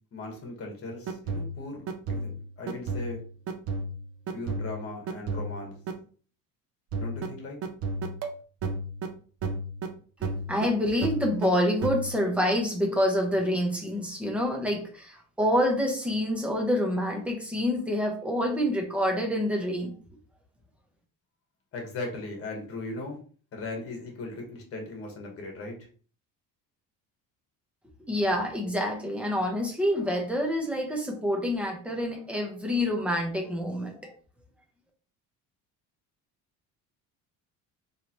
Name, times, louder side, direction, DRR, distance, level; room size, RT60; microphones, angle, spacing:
voice 1, 0.1-3.2 4.3-5.8 6.9-7.6 21.7-23.2 23.5-25.8, left 2 dB, 40° left, 1 dB, 1.4 m, -38 dB
sound 1, 0.9-5.9 6.9-9.1 9.4-9.9 10.2-10.7 11.0-11.5 11.8-12.3, right 2 dB, 40° right, 0.6 m, -33 dB
voice 2, 10.5-20.0 28.1-34.1, equal, 5° right, 1 dB, 0.8 m, -27 dB
3.8 x 3.2 x 3.0 m, 0.41 s
cardioid pair, 160°, 36 cm